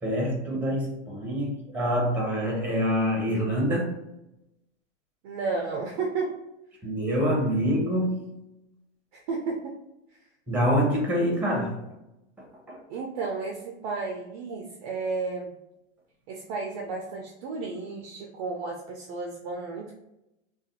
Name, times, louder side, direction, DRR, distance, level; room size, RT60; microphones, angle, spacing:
voice 1, 0.0-3.9 6.8-8.3 10.5-11.8 12.4-12.8, equal, 5° right, -1 dB, 0.9 m, -26 dB
voice 2, 5.2-6.4 9.1-9.8 12.9-15.5 16.3-19.9, right 4 dB, 35° right, 1 dB, 0.4 m, -32 dB
2.5 x 2.3 x 4.0 m, 0.90 s
hypercardioid pair, 135°, 34 cm